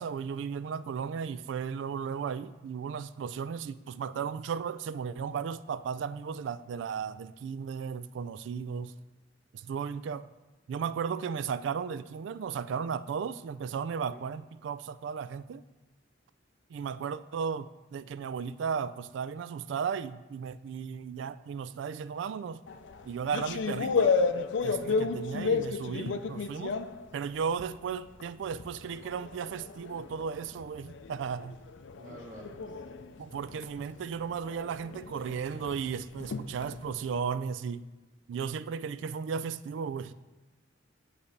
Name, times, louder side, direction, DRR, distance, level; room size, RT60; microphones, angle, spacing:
voice 1, 0.0-8.9 9.5-10.3 10.7-15.6 16.7-22.6 23.0-24.1 24.6-26.8 27.1-31.6 33.2-37.8 38.3-40.1, right 6 dB, 75° right, 0.3 m, -35 dB
sound 1, 22.7-27.8 28.2-37.1, left 4 dB, 75° left, 0.4 m, -33 dB
voice 2, 24.6-25.0 32.0-33.0, right 1 dB, 45° right, 1.3 m, -49 dB
9.7 x 3.3 x 6.4 m
head